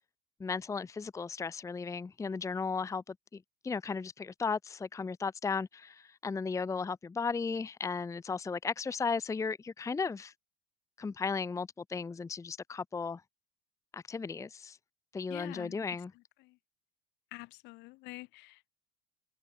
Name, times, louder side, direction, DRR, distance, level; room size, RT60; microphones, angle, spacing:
voice 1, 0.4-3.1 3.6-10.3 11.0-13.2 13.9-14.8 15.1-16.1, left 5 dB, 15° left, 0.7 m, -35 dB
voice 2, 15.3-15.8 16.4-16.5 17.3-18.7, left 23 dB, 60° left, 1.7 m, -47 dB
hypercardioid pair, 70°, 21 cm